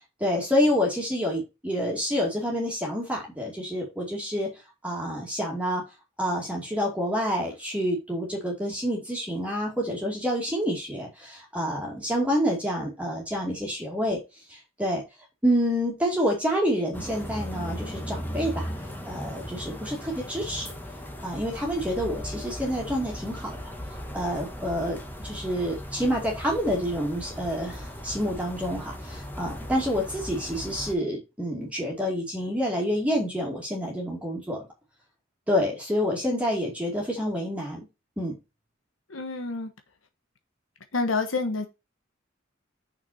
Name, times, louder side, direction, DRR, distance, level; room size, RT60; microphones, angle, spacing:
voice 1, 0.0-4.5 4.8-5.8 6.2-14.2 14.5-15.0 15.4-20.7 21.2-23.7 24.1-34.6 35.5-37.9 38.2-38.4, equal, 5° right, 2.5 m, -28 dB
sound 1, 16.9-30.9, equal, 10° left, 1.5 m, -37 dB
voice 2, 39.1-39.7 40.9-41.7, left 3 dB, 85° left, 1.2 m, -28 dB
6.6 x 6.0 x 4.3 m
head